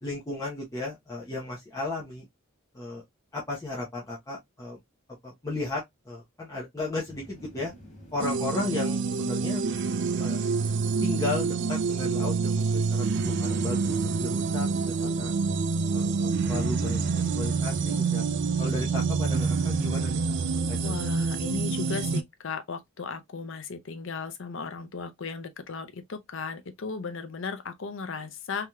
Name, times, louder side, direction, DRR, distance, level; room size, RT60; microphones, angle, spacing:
voice 1, 0.0-2.2 2.7-3.0 3.3-4.8 5.2-7.7 8.1-9.6 10.2-10.4 11.0-15.3 15.9-18.2 18.6-20.4 20.7-20.9, left 2 dB, 15° left, 0.8 m, -35 dB
sound 1, 7.1-20.8, right 1 dB, 40° left, 1.4 m, -48 dB
sound 2, 8.2-22.2, right 4 dB, 60° right, 0.4 m, -27 dB
voice 2, 20.8-28.7, left 5 dB, 65° left, 0.6 m, -36 dB
3.4 x 2.9 x 2.2 m
head